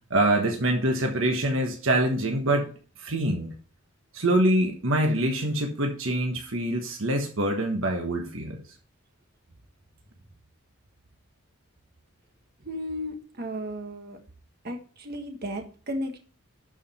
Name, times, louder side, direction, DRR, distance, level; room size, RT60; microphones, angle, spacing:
voice 1, 0.1-2.7 3.0-3.5 4.1-8.6, right 1 dB, 65° right, 3 dB, 1.3 m, -25 dB
voice 2, 12.6-14.2 14.6-16.2, equal, 45° right, 4 dB, 1.5 m, -34 dB
11.5 x 5.0 x 4.2 m, 0.39 s
head